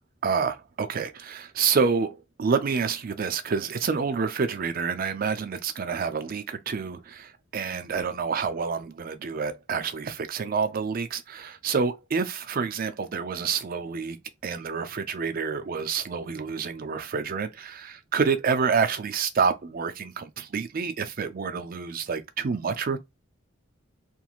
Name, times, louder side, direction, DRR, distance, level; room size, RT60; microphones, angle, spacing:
voice 1, 0.2-14.2 14.4-23.0, right 5 dB, 45° right, 0.4 m, -28 dB
3.0 x 2.5 x 2.3 m
head